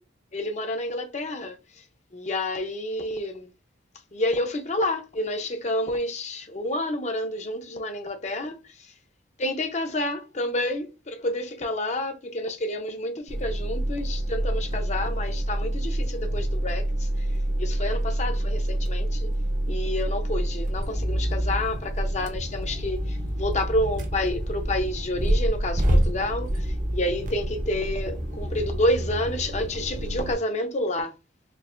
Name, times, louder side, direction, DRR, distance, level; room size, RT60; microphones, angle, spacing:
voice 1, 0.3-1.6 2.1-3.5 4.1-8.9 9.4-17.3 17.6-19.3 19.7-31.2, left 1 dB, 40° left, 0.7 m, -29 dB
sound 1, 13.3-30.3, right 1 dB, 45° right, 0.7 m, -27 dB
4.5 x 2.6 x 2.5 m
head